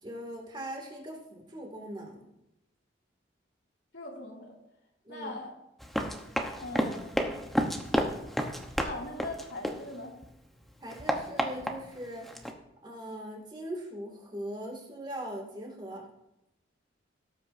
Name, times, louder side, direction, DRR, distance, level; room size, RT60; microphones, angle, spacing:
voice 1, 0.0-2.3 5.0-5.3 10.8-12.5 12.8-16.1, right 1 dB, 25° right, 0 dB, 2.3 m, -40 dB
voice 2, 3.9-4.6 5.1-5.5 6.6-7.5 8.8-10.1, left 2 dB, 85° left, -2 dB, 2.6 m, -41 dB
Run, 5.8-10.3 10.6-12.5, equal, ahead, 0.9 m, -32 dB
17.5 x 8.6 x 2.7 m, 0.87 s
head